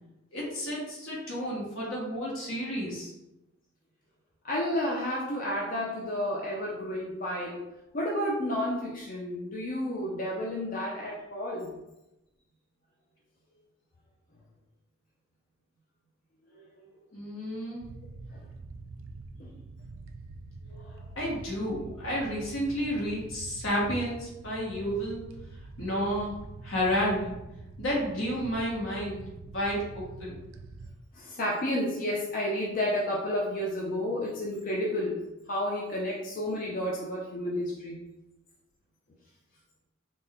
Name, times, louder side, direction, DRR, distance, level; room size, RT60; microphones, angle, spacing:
voice 1, 0.3-3.1 17.1-17.9 21.1-25.2 25.8-26.3 26.6-27.4 27.8-30.4, equal, 75° left, -4 dB, 1.3 m, -31 dB
voice 2, 4.4-7.6 7.9-11.7 16.5-16.6 18.3-18.4 19.4-19.5 20.7-21.0 31.1-35.2 35.5-38.1, left 1 dB, 40° left, -4 dB, 0.5 m, -31 dB
sound 1, 17.8-31.0, right 3 dB, 70° right, 0.3 m, -45 dB
4.0 x 2.2 x 3.6 m, 0.94 s
head